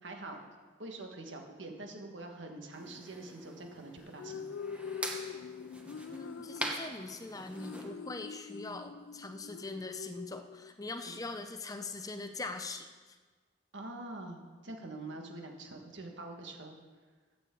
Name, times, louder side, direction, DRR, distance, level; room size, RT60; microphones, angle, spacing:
voice 1, 0.0-0.5 0.8-4.5 11.0-11.1 13.7-16.8, right 2 dB, 85° right, 2 dB, 1.6 m, -45 dB
sound 1, 2.7-7.9, right 1 dB, 5° right, 1.0 m, -43 dB
sound 2, 4.0-11.0, left 6 dB, 90° left, 0.4 m, -45 dB
voice 2, 6.1-13.2, left 3 dB, 20° left, 7 dB, 0.5 m, -42 dB
14.5 x 8.3 x 3.8 m, 1.4 s
head